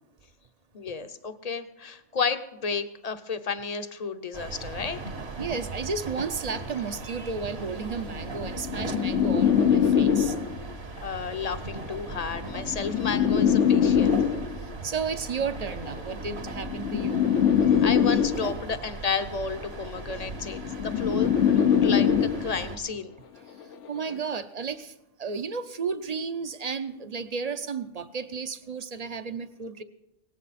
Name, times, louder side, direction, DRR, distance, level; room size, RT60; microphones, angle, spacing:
voice 1, 0.7-5.0 11.0-14.3 17.7-23.1, left 5 dB, 35° left, 10 dB, 0.8 m, -32 dB
sound 1, 4.3-22.8, right 3 dB, 60° right, 1.5 m, -39 dB
voice 2, 5.4-10.4 14.8-17.2 23.3-23.5 23.9-29.8, right 5 dB, 40° right, 11 dB, 0.7 m, -33 dB
sound 2, 6.5-6.7 7.6-10.7 11.7-14.7 15.7-18.7 19.7-22.7 23.7-24.1, left 8 dB, 80° left, 1.0 m, -23 dB
18.5 x 15.5 x 4.2 m, 0.90 s
omnidirectional pair, 1.2 m